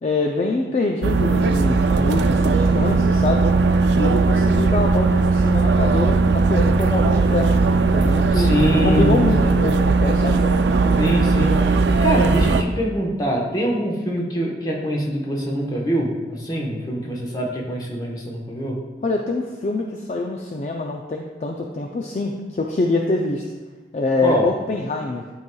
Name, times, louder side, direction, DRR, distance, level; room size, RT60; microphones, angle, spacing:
voice 1, 0.0-3.4 3.9-7.5 7.9-10.4 19.0-23.4 23.9-25.3, left 3 dB, 40° left, 1 dB, 0.4 m, -25 dB
sound 1, 1.0-12.6, right 3 dB, 70° right, 0.4 m, -18 dB
voice 2, 8.3-9.6 11.0-18.8 24.2-24.5, equal, 20° left, -1 dB, 1.0 m, -24 dB
11.5 x 4.7 x 2.3 m, 1.3 s
head